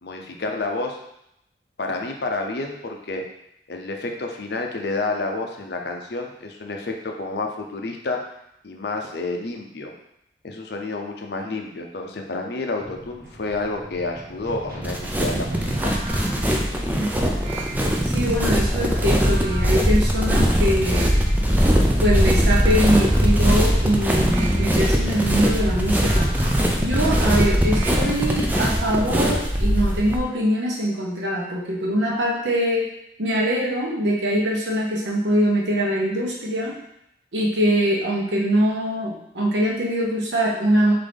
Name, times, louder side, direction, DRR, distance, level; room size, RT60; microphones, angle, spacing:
voice 1, 0.0-1.0 1.8-3.2 3.7-8.2 8.6-9.9 10.4-15.9, left 3 dB, 70° left, 2 dB, 0.6 m, -29 dB
sound 1, 12.8-30.3, right 1 dB, 55° right, 1.0 m, -36 dB
sound 2, 14.8-30.2, equal, 10° right, 0.4 m, -21 dB
sound 3, 15.7-29.5, right 2 dB, 35° right, 1.6 m, -39 dB
voice 2, 17.0-17.3 18.0-21.1 22.0-26.3 26.8-32.9 33.2-36.8 37.3-40.9, equal, 85° right, -2 dB, 1.0 m, -23 dB
3.9 x 3.7 x 3.5 m, 0.79 s
head